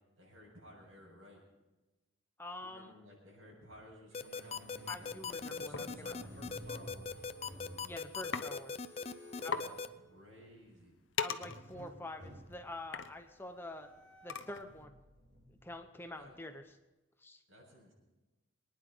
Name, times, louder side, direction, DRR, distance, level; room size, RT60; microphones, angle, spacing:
voice 1, 0.2-1.4 2.6-4.6 5.5-7.3 9.4-11.0 16.2-16.3 17.5-17.9, equal, 85° right, -3 dB, 7.2 m, -56 dB
voice 2, 2.4-2.9 4.9-6.1 7.8-8.9 9.4-9.6 11.2-13.9 14.2-14.9 15.5-16.6 17.2-17.4, left 2 dB, 10° left, 6 dB, 0.8 m, -46 dB
sound 1, 4.1-9.9, left 5 dB, 30° left, 0.4 m, -39 dB
Squeak, 4.1-10.5 11.4-16.6, equal, 55° right, 2.8 m, -54 dB
sound 2, 5.7-5.9 7.0-7.2 7.5-7.8 8.3-8.5 8.8-8.9 9.2-9.3 9.5-9.7 10.2-14.8, left 6 dB, 65° left, 0.8 m, -41 dB
23.5 x 10.0 x 5.1 m, 1.1 s
head